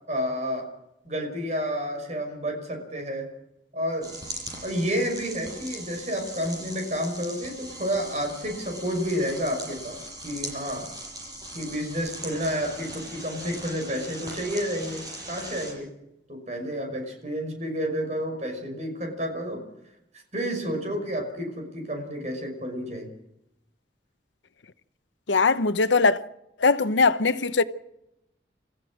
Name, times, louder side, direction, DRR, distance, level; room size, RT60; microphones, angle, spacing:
voice 1, 0.1-0.7 1.0-3.3 3.7-4.1 4.6-10.9 11.5-15.9 16.3-19.6 20.3-23.1, equal, 40° right, 5.7 m, -30 dB
sound 1, 4.0-15.7, right 1 dB, 20° right, 7.6 m, -40 dB
voice 2, 25.3-26.2 26.6-27.6, left 4 dB, 85° left, 0.9 m, -20 dB
29.5 x 15.0 x 6.2 m
head